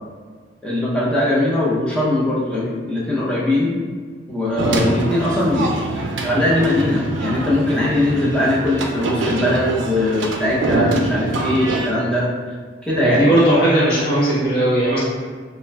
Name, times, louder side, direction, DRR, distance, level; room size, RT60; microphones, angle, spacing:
voice 1, 0.6-3.7 4.3-12.3 12.8-13.3, left 1 dB, 5° left, -7 dB, 0.5 m, -20 dB
sound 1, 4.6-11.9, right 2 dB, 75° right, 0.3 m, -24 dB
voice 2, 13.0-15.0, right 1 dB, 55° left, -10 dB, 1.2 m, -17 dB
2.3 x 2.2 x 3.2 m, 1.6 s
head